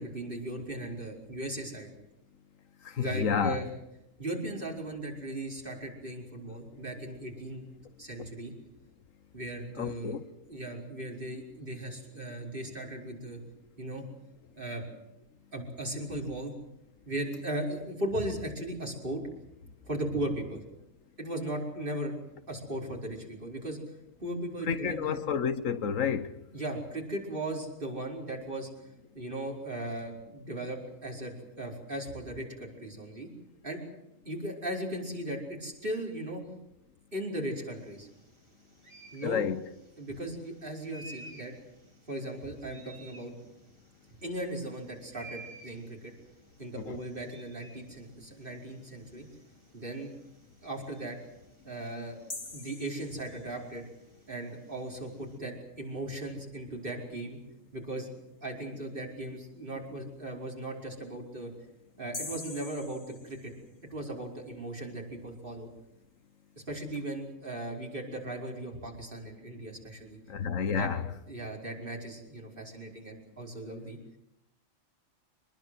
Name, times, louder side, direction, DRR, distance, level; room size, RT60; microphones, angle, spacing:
voice 1, 0.0-1.9 3.0-3.7 4.2-7.7 8.0-8.5 9.3-10.2 10.5-13.4 13.8-14.1 14.6-14.8 15.5-16.5 17.0-19.2 19.8-20.6 21.2-22.2 22.5-23.8 24.2-25.2 26.5-28.7 29.1-33.3 33.6-33.8 34.2-36.4 37.1-38.1 39.1-39.5 40.0-41.5 42.1-43.3 44.2-46.1 46.6-49.3 49.7-50.1 50.6-51.2 51.6-52.2 52.5-53.8 54.3-57.4 57.7-58.1 58.4-61.5 62.0-63.5 63.9-65.7 66.6-70.2 70.7-70.9 71.3-74.0, right 1 dB, 40° right, 5.3 m, -37 dB
voice 2, 2.8-3.6 9.8-10.3 24.7-26.4 39.2-39.6 46.8-47.0 70.3-71.0, left 7 dB, 80° left, 1.4 m, -30 dB
sound 1, 37.7-55.4, right 2 dB, 20° right, 3.3 m, -56 dB
sound 2, 52.3-53.8 62.1-63.9, left 3 dB, 25° left, 1.7 m, -43 dB
25.0 x 20.5 x 7.9 m
omnidirectional pair, 1.3 m